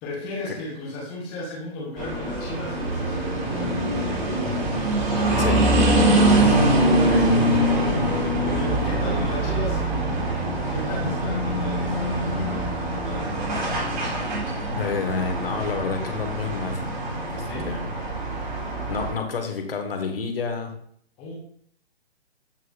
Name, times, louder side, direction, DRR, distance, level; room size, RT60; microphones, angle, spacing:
voice 1, 0.0-5.5 6.1-6.7 7.0-10.2 10.7-13.5 17.4-17.8 21.2-21.3, left 1 dB, 5° left, -4 dB, 0.3 m, -36 dB
sound 1, 2.0-19.1, right 1 dB, 45° right, 3.5 m, -23 dB
voice 2, 14.7-16.8 17.3-17.9 18.9-20.7, left 5 dB, 60° left, 5 dB, 1.7 m, -29 dB
13.5 x 4.7 x 2.5 m, 0.63 s
figure-of-eight pair, 130°, 32 cm